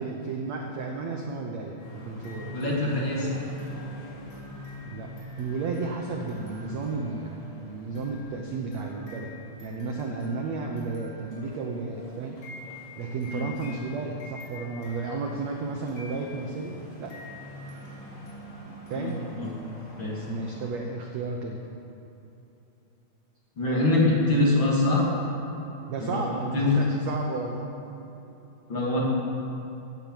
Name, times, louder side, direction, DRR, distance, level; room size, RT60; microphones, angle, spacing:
voice 1, 0.0-3.4 4.8-5.1 5.4-9.3 9.6-12.4 13.0-17.2 18.9-19.2 19.9-21.6 25.9-27.7, right 3 dB, 80° right, 1 dB, 1.5 m, -33 dB
sound 1, 1.8-20.7, left 1 dB, 65° left, 6.0 m, -44 dB
voice 2, 2.5-3.3 13.3-13.5 18.9-19.5 20.0-20.1 23.6-25.1 26.0-26.2 26.5-26.8 28.7-29.1, left 2 dB, 35° left, -5 dB, 2.6 m, -24 dB
16.5 x 8.5 x 7.7 m, 2.9 s
omnidirectional pair, 4.5 m